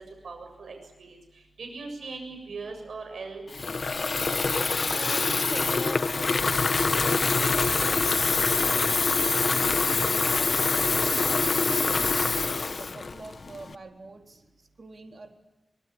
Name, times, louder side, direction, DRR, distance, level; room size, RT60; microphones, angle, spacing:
voice 1, 0.2-1.2 1.6-3.4, right 4 dB, 85° right, 4 dB, 7.4 m, -39 dB
Water tap faucet / Fill (with liquid), 3.5-13.7, left 4 dB, 55° left, 1.3 m, -25 dB
voice 2, 4.9-8.9 9.5-11.1 11.5-15.3, right 3 dB, 55° right, 3 dB, 4.0 m, -44 dB
24.5 x 23.5 x 9.8 m, 1.0 s
wide cardioid pair, 80°, 0 cm